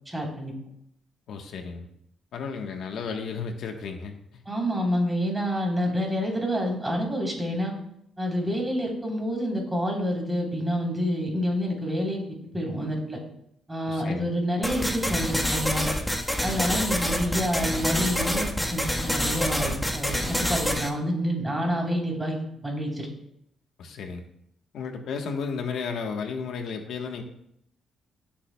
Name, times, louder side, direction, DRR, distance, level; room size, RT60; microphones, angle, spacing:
voice 1, 0.0-0.5 4.4-7.7 8.2-12.2 12.5-13.2 13.7-15.9 16.4-23.1, equal, 15° right, -1 dB, 3.4 m, -28 dB
voice 2, 1.3-1.9 2.3-4.4 13.9-14.3 23.8-24.2 24.7-27.2, left 5 dB, 75° left, 4 dB, 1.1 m, -34 dB
sound 1, 14.6-20.9, equal, 5° left, 1.3 m, -27 dB
15.0 x 7.4 x 2.2 m, 0.75 s
cardioid pair, 90°, 0 cm